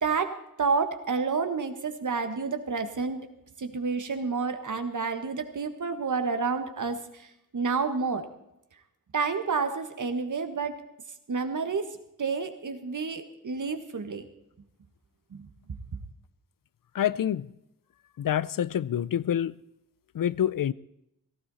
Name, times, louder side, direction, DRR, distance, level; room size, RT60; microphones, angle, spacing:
voice 1, 0.0-3.2 3.6-8.3 9.1-10.8 11.3-11.9 12.2-14.3 15.3-15.5, right 4 dB, 60° right, 1.6 m, -29 dB
voice 2, 16.9-17.5 18.2-19.6 20.1-20.7, left 10 dB, 75° left, 0.6 m, -27 dB
17.0 x 15.0 x 4.2 m
wide cardioid pair, 110°, 34 cm